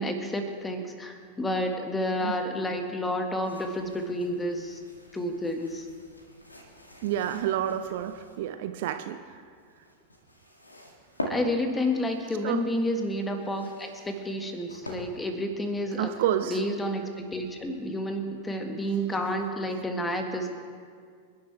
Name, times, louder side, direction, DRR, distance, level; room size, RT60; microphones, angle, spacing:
voice 1, 0.0-4.8 5.1-5.9 11.3-16.1 16.5-20.5, left 1 dB, 10° left, 5 dB, 1.8 m, -30 dB
sound 1, 3.4-8.4 9.4-15.4, left 1 dB, 80° left, 2.1 m, -44 dB
voice 2, 7.0-9.4 12.4-12.6 16.0-16.6, right 11 dB, 50° right, 9 dB, 0.7 m, -29 dB
27.5 x 11.5 x 3.4 m, 2.1 s
figure-of-eight pair, 90°, 0 cm